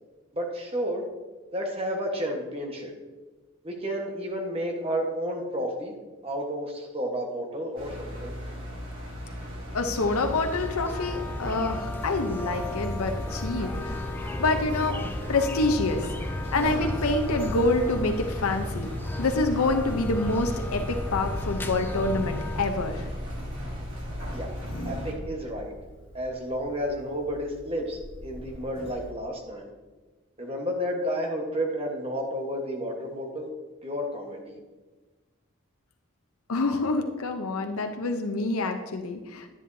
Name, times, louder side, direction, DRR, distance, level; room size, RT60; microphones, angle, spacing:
voice 1, 0.3-1.0 1.5-2.9 3.6-5.9 6.2-8.3 24.3-24.5 24.8-25.7 26.1-29.7 30.4-33.5 33.8-34.6, equal, 25° right, 1 dB, 1.2 m, -31 dB
Engine, 7.8-25.1, equal, 75° right, 2.7 m, -37 dB
voice 2, 9.7-14.1 14.4-15.0 15.3-16.1 16.5-18.9 19.2-23.1 36.5-39.5, left 2 dB, 85° left, 4 dB, 0.7 m, -27 dB
sound 1, 10.0-22.7, left 2 dB, 10° left, 0.3 m, -35 dB
Sliding door, 11.7-29.1, equal, 60° left, 1.4 m, -40 dB
10.0 x 10.0 x 2.7 m, 1.2 s
head